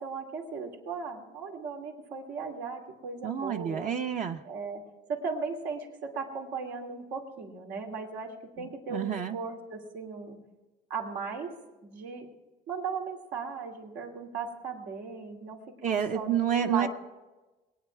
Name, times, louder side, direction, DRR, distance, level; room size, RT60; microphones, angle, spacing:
voice 1, 0.0-3.9 4.4-4.8 5.1-10.4 10.9-11.5 11.8-12.3 12.7-16.9, right 5 dB, 90° right, 0 dB, 2.8 m, -37 dB
voice 2, 3.2-4.4 8.6-9.4 15.8-16.9, right 8 dB, 50° right, 4 dB, 0.8 m, -29 dB
22.0 x 9.2 x 4.6 m, 1.1 s
cardioid pair, 110°, 17 cm